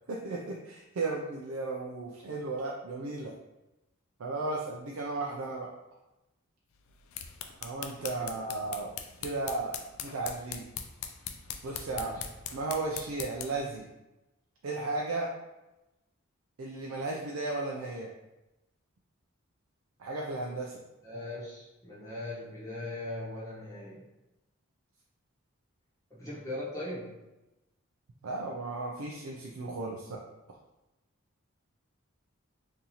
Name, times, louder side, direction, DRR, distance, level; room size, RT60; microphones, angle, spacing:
voice 1, 0.1-3.3 4.2-5.7 7.6-8.9 9.2-9.7 10.0-10.7 11.6-12.1 12.5-13.9 14.6-15.3 16.6-18.1 20.0-20.8 28.2-30.2 30.5-30.6, right 3 dB, 75° right, -1 dB, 0.4 m, -35 dB
sound 1, 6.9-13.7, left 8 dB, 75° left, 0.4 m, -41 dB
voice 2, 8.0-8.4 11.8-12.2 21.0-24.0 26.1-27.2, left 1 dB, 15° left, -9 dB, 1.0 m, -40 dB
3.8 x 2.7 x 2.9 m, 0.99 s
head